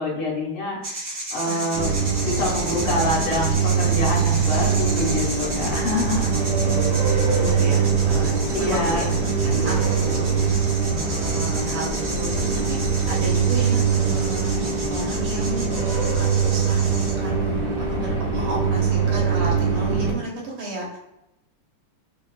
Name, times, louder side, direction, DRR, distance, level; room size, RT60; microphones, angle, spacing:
voice 1, 0.0-1.9 2.2-6.4 8.5-9.1, left 1 dB, 80° left, -7 dB, 1.9 m, -26 dB
sound 1, 0.8-17.1, right 1 dB, 50° right, 1.7 m, -34 dB
voice 2, 1.4-2.5 6.3-8.3 8.6-9.0 9.4-12.8 13.1-21.0, right 1 dB, 80° right, -2 dB, 2.0 m, -33 dB
sound 2, 1.7-20.1, right 5 dB, 65° right, 0.6 m, -22 dB
6.3 x 2.3 x 2.3 m, 0.85 s
omnidirectional pair, 2.4 m